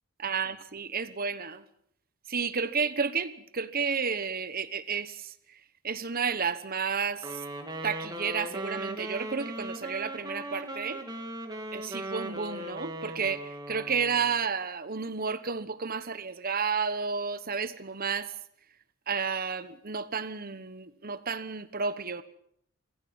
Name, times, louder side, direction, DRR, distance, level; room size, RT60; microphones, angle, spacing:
voice 1, 0.2-1.6 2.3-5.6 5.8-7.4 7.8-11.0 11.7-18.3 19.1-22.2, right 5 dB, 40° right, 1.1 m, -31 dB
Wind instrument woodwind instrument, 7.2-14.4, right 1 dB, 20° right, 2.4 m, -38 dB
25.5 x 16.0 x 7.2 m
head